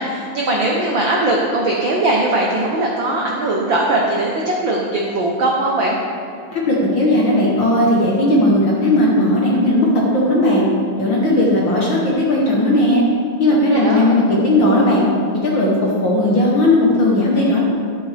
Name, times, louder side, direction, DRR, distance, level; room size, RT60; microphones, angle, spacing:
voice 1, 0.0-6.0 13.5-14.1, right 2 dB, 80° right, -1 dB, 1.1 m, -20 dB
voice 2, 6.5-10.6 11.0-13.0 13.4-15.0 15.4-17.6, left 1 dB, 55° left, -4 dB, 1.4 m, -16 dB
11.0 x 8.5 x 3.4 m, 2.4 s
omnidirectional pair, 3.3 m